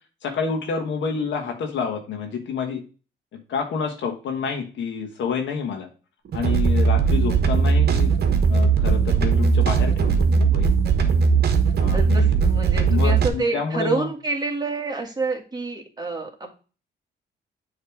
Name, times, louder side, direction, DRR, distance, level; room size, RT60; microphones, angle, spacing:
voice 1, 0.2-2.8 3.5-5.9 6.3-8.1 8.5-10.7 11.8-12.4 12.8-14.1, left 5 dB, 70° left, 3 dB, 1.3 m, -28 dB
sound 1, 6.2-13.3, right 5 dB, 55° right, 1.1 m, -19 dB
voice 2, 11.9-16.5, right 3 dB, 20° right, 1 dB, 1.8 m, -28 dB
7.1 x 3.2 x 4.6 m, 0.35 s
cardioid pair, 90°, 20 cm